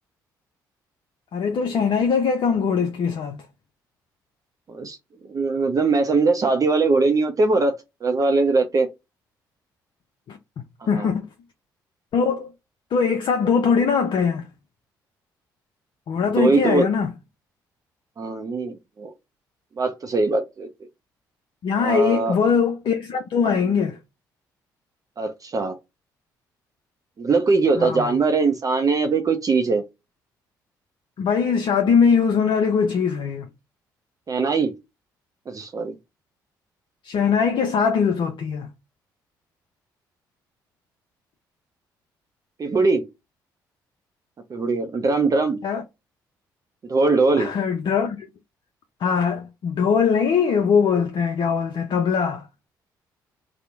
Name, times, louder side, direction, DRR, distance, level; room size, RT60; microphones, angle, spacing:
voice 1, 1.3-3.4 10.3-10.4 10.9-11.2 12.1-12.5 12.9-14.5 16.1-17.1 21.6-24.0 27.8-28.2 31.2-33.5 37.0-38.7 45.6-45.8 47.4-48.2 49.0-52.5, left 6 dB, 50° left, 0.5 m, -21 dB
voice 2, 5.3-8.9 11.0-11.1 16.4-16.9 18.2-19.1 19.8-20.7 21.8-22.4 25.2-25.8 27.2-29.8 34.3-34.7 35.5-35.9 42.6-43.1 44.5-45.6 46.8-47.5, right 3 dB, 35° right, 0.5 m, -21 dB
2.9 x 2.0 x 3.4 m
hypercardioid pair, 45°, 10 cm